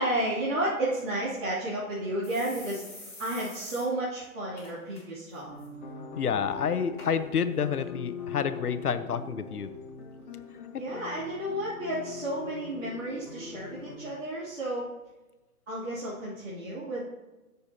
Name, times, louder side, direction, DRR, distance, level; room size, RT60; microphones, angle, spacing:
voice 1, 0.0-2.8 3.2-5.5 10.7-14.9 15.7-17.0, right 1 dB, 55° right, -10 dB, 2.8 m, -32 dB
sound 1, 1.3-1.4 1.7-1.8 2.2-3.8 4.2-4.3 4.6-5.0 5.3-5.7 6.3-6.4 7.0-7.1 7.8-7.9, left 2 dB, 10° left, 2.2 m, -46 dB
sound 2, 5.4-14.1, left 4 dB, 35° left, 1.8 m, -42 dB
voice 2, 6.2-9.7 10.7-10.8, left 7 dB, 85° left, 12 dB, 0.8 m, -29 dB
15.0 x 6.9 x 2.8 m, 1.1 s
hypercardioid pair, 170°, 44 cm